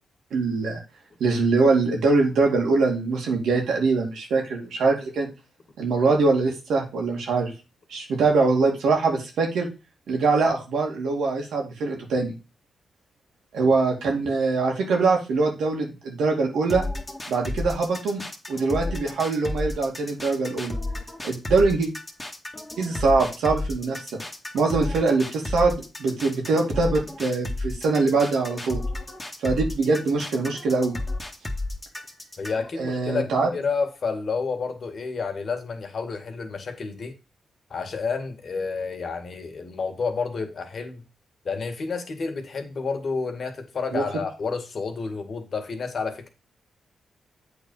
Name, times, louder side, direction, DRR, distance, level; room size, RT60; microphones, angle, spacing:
voice 1, 0.3-0.8 1.2-5.3 5.8-7.5 7.9-9.7 10.1-12.4 13.5-16.8 17.3-18.2 18.5-20.8 21.2-21.9 22.8-24.0 24.5-28.8 29.4-31.0 32.8-33.5 43.9-44.0, right 3 dB, 85° right, 2.4 m, -23 dB
sound 1, 16.7-32.7, left 2 dB, 15° left, 1.8 m, -32 dB
voice 2, 32.4-37.2 37.7-41.0 41.5-46.3, left 4 dB, 55° left, 1.9 m, -30 dB
8.2 x 4.1 x 5.4 m
cardioid pair, 70°, 0 cm